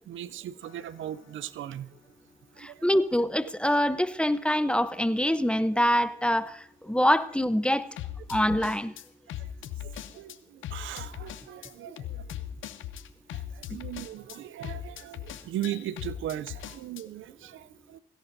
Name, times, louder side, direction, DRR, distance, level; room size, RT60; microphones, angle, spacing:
voice 1, 0.1-1.9 2.6-2.8 9.8-12.2 13.3-18.0, right 12 dB, 85° right, 17 dB, 0.5 m, -38 dB
sound 1, 0.6-0.9 8.0-10.4 10.6-17.0, left 11 dB, 90° left, 0.6 m, -39 dB
voice 2, 2.6-7.9 8.3-8.9, equal, 5° left, 14 dB, 0.7 m, -25 dB
16.5 x 16.5 x 2.6 m, 0.73 s
supercardioid pair, 50°, 20 cm